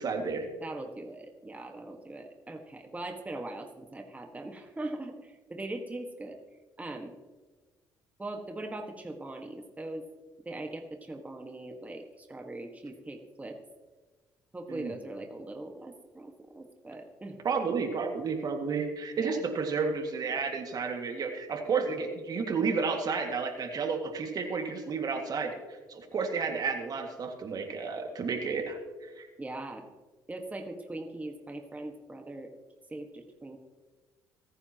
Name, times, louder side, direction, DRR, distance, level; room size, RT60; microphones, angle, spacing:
voice 1, 0.0-0.5 14.7-14.9 17.4-29.3, right 5 dB, 50° right, 4 dB, 2.1 m, -31 dB
voice 2, 0.6-6.4 6.8-7.1 8.2-10.0 10.4-13.6 14.5-17.4 19.2-19.4 21.9-22.1 29.4-29.8 30.3-32.5 32.9-33.6, right 2 dB, 15° right, 3 dB, 1.6 m, -41 dB
26.5 x 9.9 x 3.0 m, 1.3 s
supercardioid pair, 75°, 8 cm